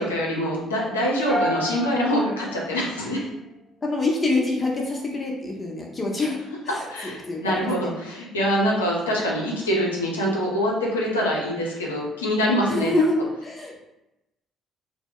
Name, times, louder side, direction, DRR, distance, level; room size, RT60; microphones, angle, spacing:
voice 1, 0.0-3.3 6.9-12.9 13.2-13.3, equal, 90° left, -3 dB, 0.5 m, -24 dB
sound 1, 1.3-3.5, equal, 30° right, 0.9 m, -30 dB
voice 2, 3.8-6.4 6.7-7.9 12.7-13.8, left 2 dB, 30° left, -2 dB, 0.7 m, -26 dB
2.1 x 2.0 x 3.6 m, 0.91 s
hypercardioid pair, 50°, 0 cm